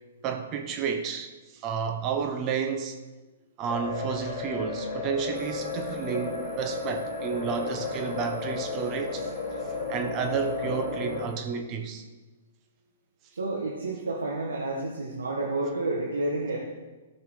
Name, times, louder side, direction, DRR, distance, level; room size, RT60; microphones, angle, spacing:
voice 1, 0.2-3.0 3.6-9.3 9.9-12.0, right 7 dB, 30° right, 5 dB, 0.9 m, -31 dB
sound 1, 3.7-11.3, left 6 dB, 45° left, 3.0 m, -34 dB
sound 2, 5.3-11.4, right 5 dB, 60° right, 1.5 m, -41 dB
voice 2, 13.3-16.6, right 2 dB, 90° right, -3 dB, 1.6 m, -30 dB
14.5 x 5.8 x 4.9 m, 1.2 s
hypercardioid pair, 130°, 0 cm